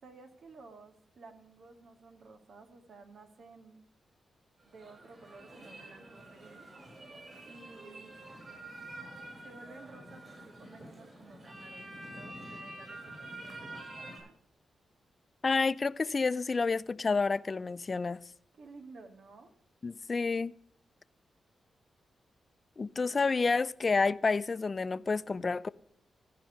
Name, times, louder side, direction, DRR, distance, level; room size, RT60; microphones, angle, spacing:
voice 1, 0.0-3.9 4.6-6.7 7.5-8.2 9.4-14.3 18.5-19.5, right 3 dB, 70° right, 1.7 m, -54 dB
sound 1, 4.6-14.2, right 1 dB, 45° right, 6.5 m, -47 dB
voice 2, 15.4-18.2 19.8-20.5 22.8-25.7, left 4 dB, 45° left, 0.4 m, -29 dB
15.0 x 5.2 x 8.0 m
cardioid pair, 60°, 0 cm